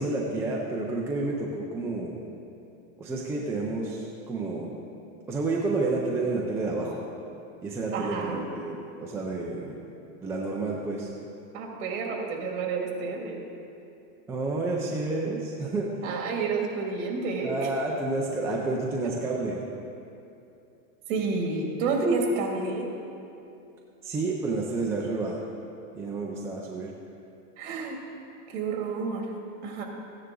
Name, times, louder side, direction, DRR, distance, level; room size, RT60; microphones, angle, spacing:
voice 1, 0.0-2.2 3.0-4.7 5.3-7.0 7.6-9.8 10.2-11.1 14.3-15.9 17.4-19.6 24.0-25.4 26.0-26.9, right 3 dB, 5° right, -3 dB, 0.4 m, -30 dB
voice 2, 7.9-8.4 11.5-13.4 16.0-17.7 19.0-19.1 21.1-22.9 27.6-28.0 28.5-29.3 29.6-29.8, right 4 dB, 60° right, 1 dB, 2.3 m, -29 dB
14.5 x 9.6 x 3.8 m, 2.7 s
supercardioid pair, 160°, 41 cm